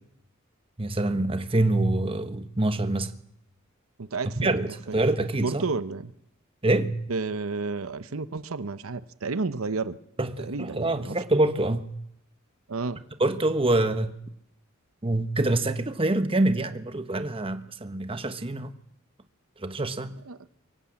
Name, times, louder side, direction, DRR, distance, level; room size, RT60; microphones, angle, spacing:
voice 1, 0.8-3.1 4.4-5.6 6.6-7.0 10.2-11.9 13.2-14.2 15.0-18.7 19.6-20.2, right 2 dB, 25° right, 1.2 m, -25 dB
voice 2, 4.0-4.6 5.4-6.1 7.1-10.0 10.4-11.2 12.7-13.0 20.3-20.4, right 3 dB, 80° right, 0.9 m, -31 dB
23.0 x 18.5 x 8.7 m
head